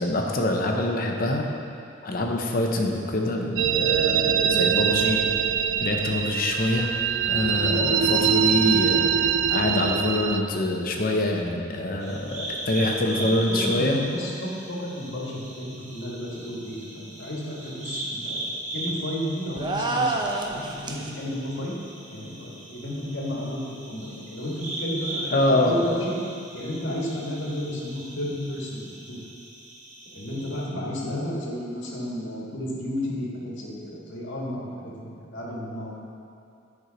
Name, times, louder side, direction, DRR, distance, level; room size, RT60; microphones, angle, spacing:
voice 1, 0.0-1.5 2.0-5.3 5.8-6.9 7.3-14.0 25.3-25.7, left 1 dB, 50° left, 1 dB, 0.8 m, -25 dB
sound 1, 3.6-10.4, right 7 dB, 70° right, 0.4 m, -23 dB
sound 2, 12.0-30.7, right 1 dB, 40° right, 1.4 m, -38 dB
voice 2, 13.0-18.4 18.7-21.7 22.1-26.2 26.5-29.2 30.1-35.9, left 1 dB, 70° left, -4 dB, 1.5 m, -32 dB
sound 3, 19.6-21.1, right 2 dB, 25° right, 0.6 m, -27 dB
9.4 x 4.7 x 5.1 m, 2.5 s
head